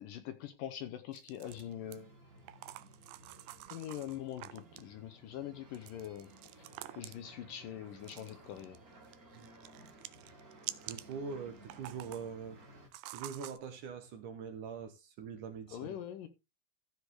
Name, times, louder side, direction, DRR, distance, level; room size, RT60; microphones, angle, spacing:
voice 1, 0.0-2.1 3.7-6.3 7.0-8.8 15.7-16.3, left 11 dB, 70° left, 2.3 m, -43 dB
sound 1, 1.1-2.0 2.5-4.9 5.7-7.3 8.0-8.8 9.1-11.1 11.6-12.3 12.9-13.6, right 16 dB, 80° right, 2.2 m, -48 dB
sound 2, 1.4-12.9, right 2 dB, 30° right, 2.0 m, -57 dB
voice 2, 10.8-12.6 13.1-16.0, right 6 dB, 60° right, 2.5 m, -43 dB
14.5 x 5.1 x 4.7 m
omnidirectional pair, 4.5 m